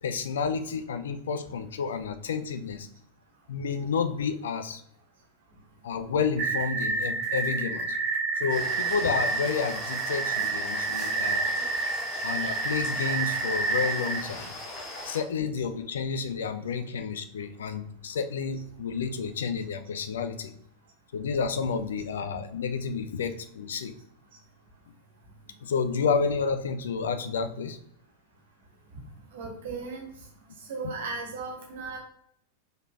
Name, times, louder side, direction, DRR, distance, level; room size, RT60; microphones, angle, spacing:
voice 1, 0.0-2.9 3.5-4.8 5.8-8.0 8.4-11.5 12.2-14.5 15.0-20.5 21.1-23.9 25.6-27.8 30.8-30.9, left 5 dB, 65° left, 10 dB, 0.5 m, -30 dB
sound 1, 6.4-14.2, right 4 dB, 35° right, 1.9 m, -29 dB
sound 2, 8.5-15.2, left 2 dB, 35° left, 1.6 m, -39 dB
voice 2, 29.3-30.0 30.7-32.0, right 4 dB, 60° right, 1 dB, 1.3 m, -36 dB
5.0 x 4.1 x 2.4 m, 0.69 s
figure-of-eight pair, 90°, 0 cm